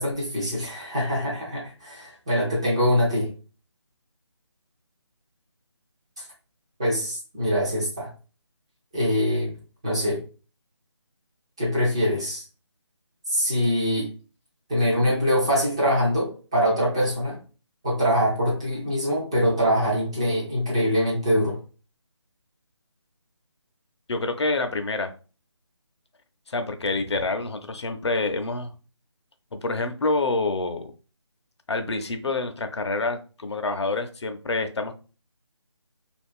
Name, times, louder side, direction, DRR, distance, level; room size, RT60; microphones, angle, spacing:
voice 1, 0.0-3.3 6.8-8.1 8.9-9.5 9.8-10.2 11.6-12.4 13.3-14.1 14.7-17.4 17.8-21.6, equal, 10° right, -6 dB, 0.4 m, -23 dB
voice 2, 24.1-25.1 26.5-28.7 29.5-30.9 31.7-34.9, left 3 dB, 65° left, 7 dB, 0.5 m, -27 dB
2.4 x 2.3 x 3.5 m, 0.35 s
figure-of-eight pair, 160°, 15 cm